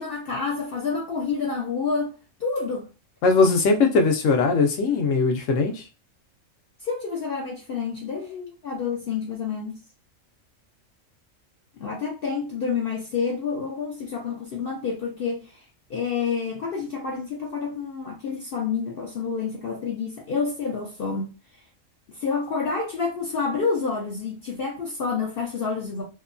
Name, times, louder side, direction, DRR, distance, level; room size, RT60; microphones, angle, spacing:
voice 1, 0.0-2.9 6.8-9.8 11.8-21.3 22.1-26.0, left 5 dB, 60° left, 0.6 m, -29 dB
voice 2, 3.2-5.8, left 4 dB, 75° left, 1.0 m, -20 dB
2.8 x 2.2 x 2.4 m
omnidirectional pair, 1.4 m